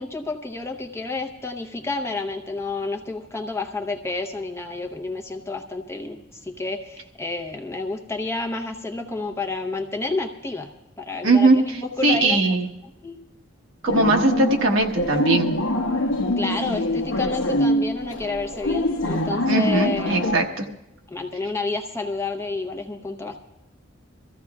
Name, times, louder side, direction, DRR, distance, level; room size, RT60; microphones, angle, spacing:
voice 1, 0.0-12.5 13.0-13.2 16.4-20.4 21.1-23.4, left 3 dB, 15° left, 2 dB, 0.8 m, -30 dB
voice 2, 11.2-12.7 13.8-15.5 19.5-20.7, right 2 dB, 75° right, 3 dB, 1.2 m, -20 dB
sound 1, 13.9-20.4, left 1 dB, 70° left, 0.9 m, -24 dB
24.5 x 14.5 x 2.4 m, 0.91 s
head